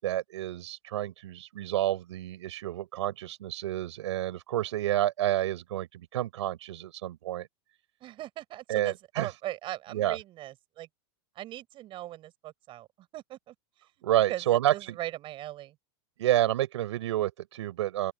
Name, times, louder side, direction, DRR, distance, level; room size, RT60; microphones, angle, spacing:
voice 1, 0.0-7.5 8.7-9.3 9.9-10.2 14.0-15.0 16.2-18.1, right 13 dB, 80° right, 6.8 m, -29 dB
voice 2, 8.0-10.9 11.3-12.9 13.1-13.5 14.3-15.7, right 14 dB, 35° right, 7.9 m, -39 dB
open air
supercardioid pair, 140°, 15 cm